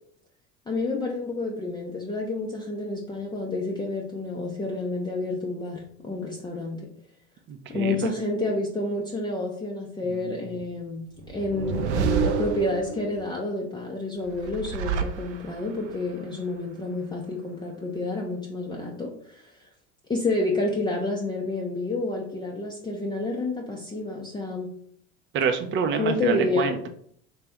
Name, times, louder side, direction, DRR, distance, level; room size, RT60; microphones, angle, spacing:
voice 1, 0.7-6.9 7.7-19.7 20.1-24.7 26.0-26.7, left 2 dB, 15° left, -1 dB, 0.6 m, -29 dB
voice 2, 7.5-8.0 10.1-10.3 25.3-26.9, right 6 dB, 35° right, 6 dB, 0.6 m, -27 dB
sound 1, 11.2-13.2 14.3-15.8, right 6 dB, 85° right, 0.5 m, -28 dB
3.3 x 2.8 x 3.4 m, 0.63 s
hypercardioid pair, 80°, 34 cm